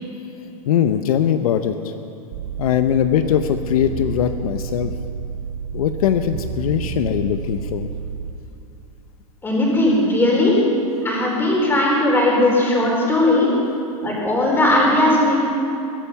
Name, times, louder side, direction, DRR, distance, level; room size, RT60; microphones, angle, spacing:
voice 1, 0.7-1.7 2.6-4.9 5.7-7.9, left 10 dB, 70° left, 9 dB, 0.8 m, -20 dB
sound 1, 2.3-8.3, right 6 dB, 60° right, 1.2 m, -30 dB
voice 2, 9.4-10.5 11.0-13.5 14.0-15.3, left 1 dB, 10° left, -3 dB, 4.2 m, -17 dB
21.0 x 10.5 x 5.8 m, 2.8 s
supercardioid pair, 145°, 19 cm